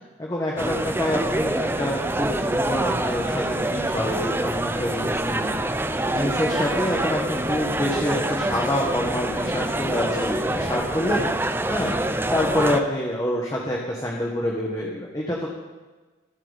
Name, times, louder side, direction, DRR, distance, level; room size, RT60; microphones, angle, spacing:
voice 1, 0.2-5.6 6.0-12.0 12.3-15.5, left 1 dB, 20° left, -2 dB, 1.6 m, -27 dB
sound 1, 0.6-12.8, right 1 dB, 10° right, 0.6 m, -26 dB
26.5 x 8.9 x 4.2 m, 1.3 s
head